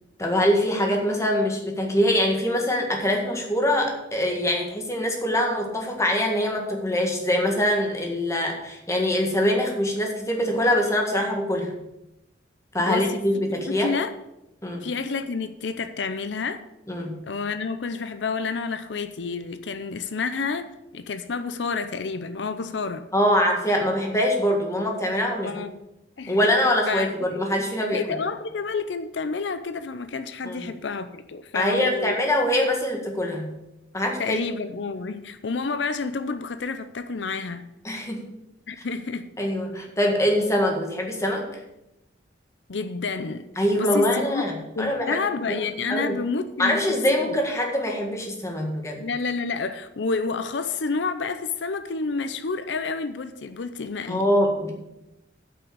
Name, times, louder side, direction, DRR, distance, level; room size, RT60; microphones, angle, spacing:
voice 1, 0.2-11.7 12.7-13.9 14.6-14.9 16.9-17.1 23.1-25.5 26.3-28.0 30.4-30.6 31.5-33.5 33.9-34.4 37.8-38.3 39.4-41.6 43.6-46.2 46.6-49.0 54.1-54.7, left 1 dB, 15° left, 1 dB, 1.8 m, -24 dB
voice 2, 12.8-14.1 14.8-16.6 17.3-23.0 25.4-25.7 26.2-26.5 26.9-27.1 27.9-32.2 34.2-37.6 38.7-39.3 42.7-43.4 43.8-44.4 44.8-47.0 47.2-47.4 49.0-54.3, left 4 dB, 80° left, 10 dB, 0.6 m, -29 dB
8.3 x 6.0 x 7.9 m, 0.90 s
head